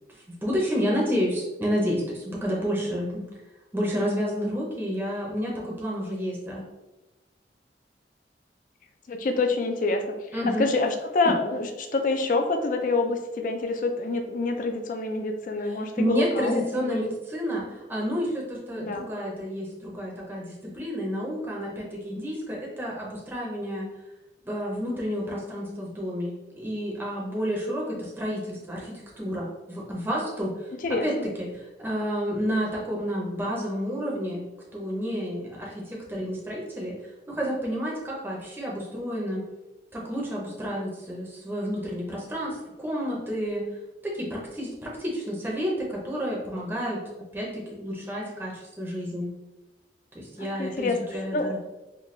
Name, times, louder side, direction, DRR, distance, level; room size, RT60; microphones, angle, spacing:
voice 1, 0.1-3.2 3.7-6.6 10.3-10.7 15.6-23.9 24.4-30.7 31.0-34.5 34.7-36.9 37.3-39.5 39.9-43.6 44.0-47.0 47.3-49.3 50.1-51.6, equal, 10° right, -4 dB, 0.6 m, -30 dB
voice 2, 9.1-10.0 10.6-17.1 18.8-19.0 30.8-31.1 50.4-51.6, left 3 dB, 50° left, 5 dB, 0.4 m, -27 dB
4.0 x 2.3 x 3.1 m, 1.0 s
head